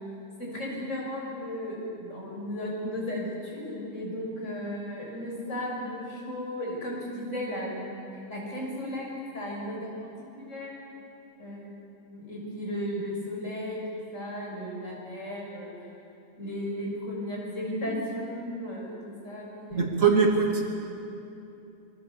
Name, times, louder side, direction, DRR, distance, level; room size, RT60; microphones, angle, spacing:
voice 1, 0.4-8.0 8.3-10.7 11.4-15.7 16.4-19.9, left 1 dB, 75° left, -3 dB, 6.7 m, -35 dB
voice 2, 19.7-20.6, right 5 dB, 85° right, 1 dB, 3.2 m, -22 dB
26.0 x 23.5 x 7.1 m, 2.9 s
omnidirectional pair, 1.3 m